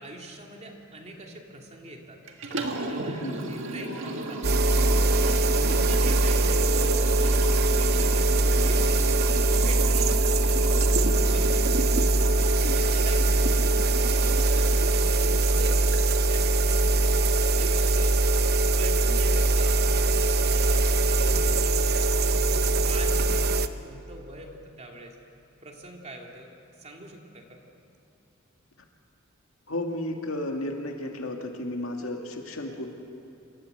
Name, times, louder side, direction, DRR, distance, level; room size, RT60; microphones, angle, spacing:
voice 1, 0.0-2.2 2.5-5.4 5.7-9.1 9.6-11.7 12.7-13.6 14.0-18.1 18.7-19.8 20.0-22.2 22.5-25.2 25.6-26.5 26.8-27.6, right 1 dB, 35° right, 1 dB, 2.7 m, -43 dB
Liquid, 2.3-16.4, right 2 dB, 65° right, 1.9 m, -35 dB
voice 2, 3.2-3.5 5.6-6.0 12.6-12.9 29.7-32.9, left 1 dB, 75° left, 2 dB, 2.1 m, -33 dB
sound 1, 4.4-23.7, right 2 dB, 50° right, 0.8 m, -22 dB
27.0 x 14.0 x 8.0 m, 2.8 s
head